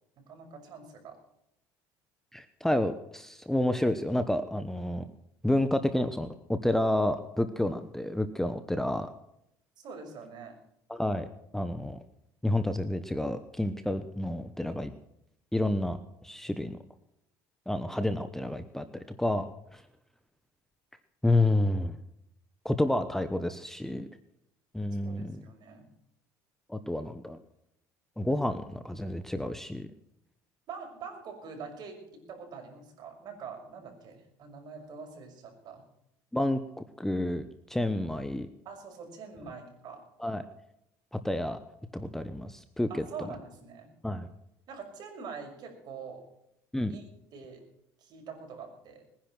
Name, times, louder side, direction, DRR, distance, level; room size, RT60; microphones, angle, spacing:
voice 1, 0.2-1.2 9.8-10.5 25.0-25.9 30.7-35.8 38.6-40.0 42.9-43.9 44.7-46.2 46.9-47.0 47.3-47.6 48.0-49.0, right 5 dB, 50° right, 3 dB, 6.0 m, -44 dB
voice 2, 2.3-5.1 5.4-9.1 10.9-11.3 11.5-12.0 12.4-14.9 15.5-16.0 16.2-16.8 17.7-19.8 21.2-22.0 22.6-24.1 24.7-25.4 26.7-27.4 28.2-29.9 36.3-36.6 37.0-38.5 40.2-40.4 41.1-41.6 41.9-43.0 44.0-44.3 46.7-46.9, left 1 dB, 5° left, 10 dB, 1.0 m, -29 dB
21.0 x 10.5 x 6.1 m, 0.79 s
supercardioid pair, 110°, 9 cm